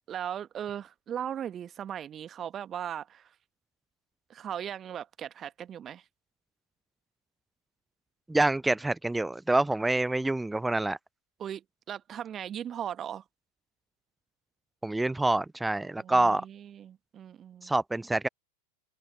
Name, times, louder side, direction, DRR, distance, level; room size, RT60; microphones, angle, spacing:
voice 1, 0.1-3.3 4.3-6.0 11.4-13.2 16.0-17.7, right 9 dB, 25° right, 1.4 m, -38 dB
voice 2, 8.3-11.0 14.8-16.4 17.6-18.3, right 2 dB, 5° right, 0.5 m, -26 dB
open air
figure-of-eight pair, 90°, 0 cm